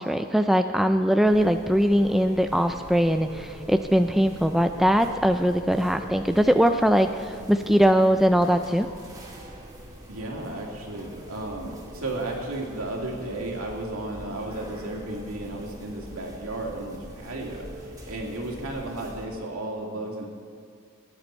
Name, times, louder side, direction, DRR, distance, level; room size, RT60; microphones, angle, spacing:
voice 1, 0.0-8.9, equal, ahead, 7 dB, 0.3 m, -21 dB
sound 1, 1.2-19.3, equal, 20° right, 1.9 m, -43 dB
voice 2, 10.1-20.3, right 2 dB, 75° right, -1 dB, 2.3 m, -34 dB
18.5 x 9.8 x 4.4 m, 2.2 s
head